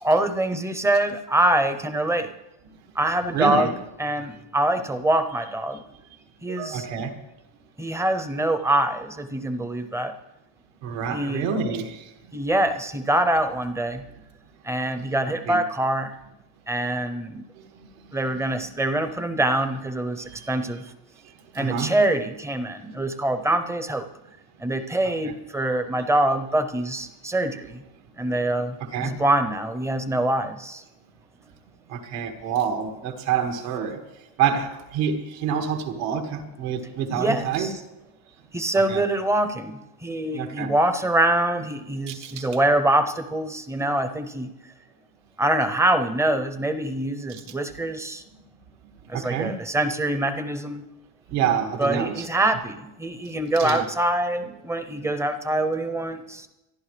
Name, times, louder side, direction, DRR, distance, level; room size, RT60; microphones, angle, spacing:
voice 1, 0.0-2.3 3.0-3.7 4.0-5.8 6.4-6.9 7.8-10.1 11.1-11.5 12.3-14.0 14.6-16.1 16.7-17.4 18.1-20.8 21.5-24.1 24.6-27.8 28.2-30.8 37.1-37.7 38.5-44.5 45.4-48.2 49.1-50.8 51.8-56.5, right 1 dB, 5° right, 10 dB, 0.5 m, -24 dB
voice 2, 3.3-3.7 5.7-5.8 6.5-7.1 10.8-12.1 15.5-15.6 18.1-18.2 18.6-18.7 20.3-20.5 21.5-21.9 25.2-25.3 28.8-29.1 31.9-34.0 34.4-37.7 38.9-39.0 40.3-40.7 42.1-42.5 47.3-47.4 49.1-49.6 51.3-52.2 53.6-53.9, right 7 dB, 85° right, 4 dB, 2.0 m, -27 dB
25.5 x 11.0 x 3.3 m, 0.96 s
cardioid pair, 160°, 50 cm